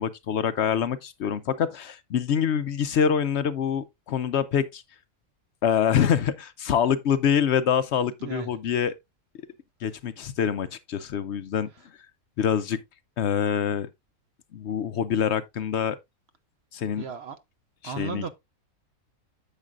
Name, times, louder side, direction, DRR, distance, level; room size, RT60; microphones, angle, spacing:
voice 1, 0.0-4.8 5.6-8.9 9.8-11.7 12.4-12.8 13.2-13.9 14.5-16.0 16.7-17.0 17.8-18.3, left 8 dB, 60° left, 0.8 m, -25 dB
voice 2, 17.0-17.4 17.8-18.3, right 6 dB, 55° right, 1.0 m, -35 dB
9.7 x 7.5 x 2.4 m
omnidirectional pair, 1.5 m